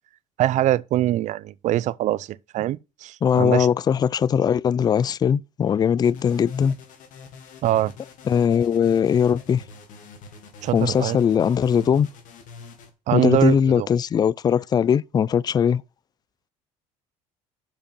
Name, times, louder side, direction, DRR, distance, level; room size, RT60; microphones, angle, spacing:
voice 1, 0.4-2.3 2.5-3.7 7.6-7.9 10.6-11.2 13.1-13.9, right 13 dB, 55° right, 0.5 m, -23 dB
voice 2, 3.2-6.8 8.3-9.6 10.7-12.1 13.1-15.8, left 8 dB, 25° left, 0.4 m, -20 dB
sound 1, 6.0-12.9, left 5 dB, 60° left, 2.1 m, -45 dB
7.4 x 5.1 x 6.8 m
supercardioid pair, 100°, 15 cm